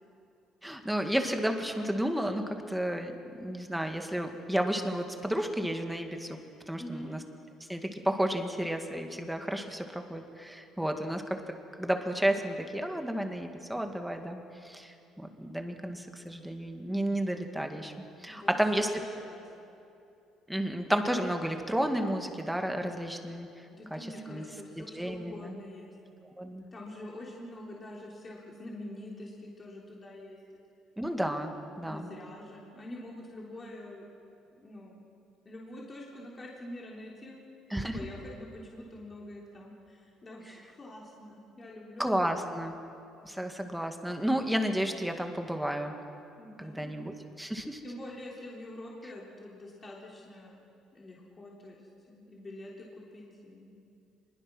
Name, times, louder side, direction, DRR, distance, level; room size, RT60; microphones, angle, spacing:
voice 1, 0.6-6.4 6.7-7.2 7.6-11.4 11.8-19.0 20.5-24.0 24.3-24.4 24.9-25.6 26.4-26.7 31.0-32.1 37.7-38.0 42.0-42.8 43.2-45.9 46.6-47.8, right 1 dB, 5° right, 5 dB, 1.9 m, -32 dB
voice 2, 6.8-7.1 18.3-19.4 23.7-25.9 26.7-30.4 31.9-34.1 34.6-35.0 35.5-37.4 37.9-42.3 46.4-47.0 47.8-50.7 50.9-53.8, left 1 dB, 25° left, -3 dB, 3.3 m, -45 dB
25.0 x 21.5 x 6.2 m, 2.7 s
cardioid pair, 115°, 0 cm